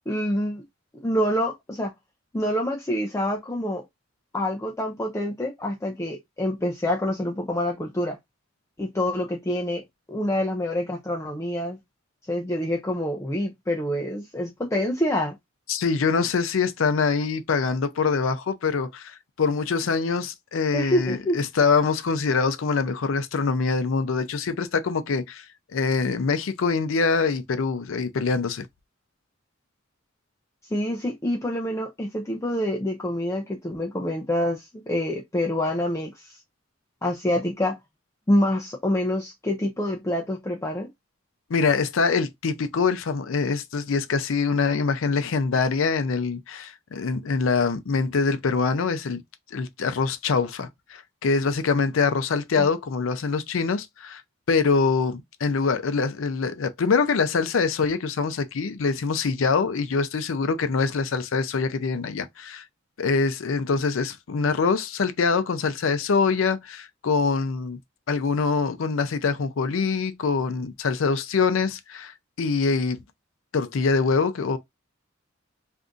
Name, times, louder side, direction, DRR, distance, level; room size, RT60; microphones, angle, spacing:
voice 1, 0.1-0.6 1.0-1.9 2.3-3.8 4.3-8.2 8.8-9.8 10.1-11.8 12.3-15.3 20.7-21.4 30.7-36.4 37.0-37.8 38.3-40.9 52.6-52.7, left 1 dB, 15° left, 0.4 m, -26 dB
voice 2, 15.7-25.4 25.7-28.7 41.5-49.2 49.5-54.2 54.5-62.6 63.0-67.8 68.1-73.0 73.5-74.6, left 4 dB, 75° left, 0.5 m, -24 dB
2.6 x 2.4 x 3.7 m
head